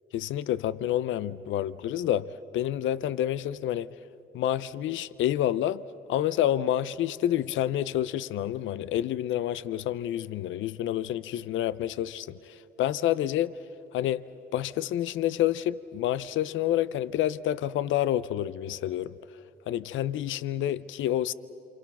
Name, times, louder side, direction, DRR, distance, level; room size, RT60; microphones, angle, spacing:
voice 1, 0.1-2.3 2.5-3.9 4.3-5.8 6.1-13.6 13.9-14.3 14.5-19.1 19.7-21.3, left 12 dB, 75° left, 0.5 m, -28 dB
28.5 x 26.0 x 5.9 m
cardioid pair, 90°, 20 cm